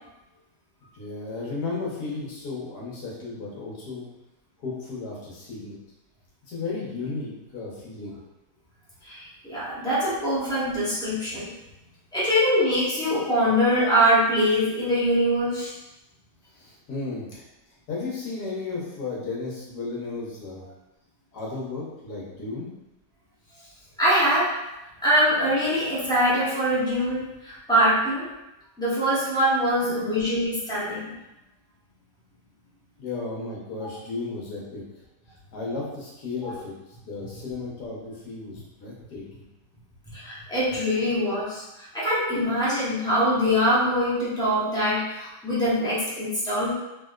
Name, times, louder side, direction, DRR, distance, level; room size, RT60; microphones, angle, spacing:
voice 1, 0.9-4.0 4.6-5.8 6.5-8.2 16.5-17.5 17.9-20.6 21.3-22.7 29.8-30.2 33.0-34.8 35.5-36.7 37.0-39.4, left 3 dB, 70° left, -5 dB, 1.4 m, -34 dB
voice 2, 9.0-11.5 12.1-15.7 24.0-24.5 25.0-28.3 28.8-31.1 40.1-46.7, equal, 5° left, -10 dB, 0.5 m, -23 dB
3.4 x 2.9 x 2.4 m, 0.94 s
omnidirectional pair, 1.8 m